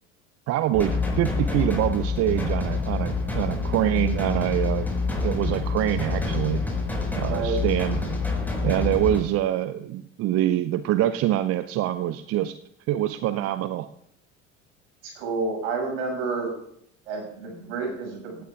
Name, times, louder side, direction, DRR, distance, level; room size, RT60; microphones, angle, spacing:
voice 1, 0.5-4.9 5.2-6.6 7.2-8.0 8.6-12.6 12.9-13.9, right 13 dB, 40° right, 12 dB, 0.6 m, -25 dB
sound 1, 0.7-9.2, left 4 dB, 5° left, 5.2 m, -27 dB
voice 2, 7.3-7.6 15.0-16.5 17.1-18.4, right 4 dB, 65° right, 1 dB, 6.5 m, -29 dB
17.5 x 15.5 x 2.4 m, 0.72 s
figure-of-eight pair, 65°, 38 cm